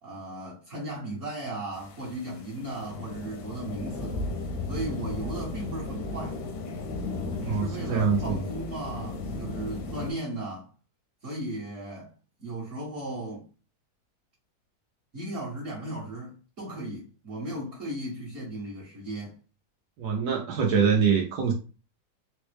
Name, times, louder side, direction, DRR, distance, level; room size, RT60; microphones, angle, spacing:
voice 1, 0.0-4.2 4.7-6.4 7.4-10.7 11.2-12.1 12.4-13.5 15.1-19.4, right 1 dB, 55° right, 1.2 m, -36 dB
sound 1, 1.7-10.1, left 2 dB, 90° left, 1.2 m, -35 dB
voice 2, 7.4-8.4 20.0-21.5, right 6 dB, 80° right, 1.2 m, -24 dB
3.9 x 2.0 x 3.2 m
omnidirectional pair, 1.7 m